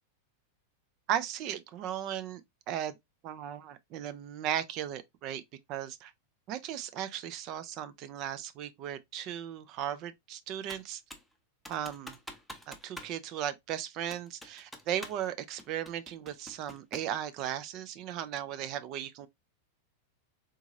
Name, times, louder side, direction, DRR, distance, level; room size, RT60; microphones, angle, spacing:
voice 1, 1.1-2.4 2.7-3.0 3.2-5.4 5.7-6.1 6.5-11.0 11.7-12.2 12.7-19.3, right 10 dB, 40° right, 0.5 m, -36 dB
Computer keyboard, 10.7-11.3 11.7-13.2 13.4-13.5 14.1-15.3 15.6-17.2, equal, ahead, 0.8 m, -47 dB
3.8 x 2.8 x 2.6 m
figure-of-eight pair, 90°, 0 cm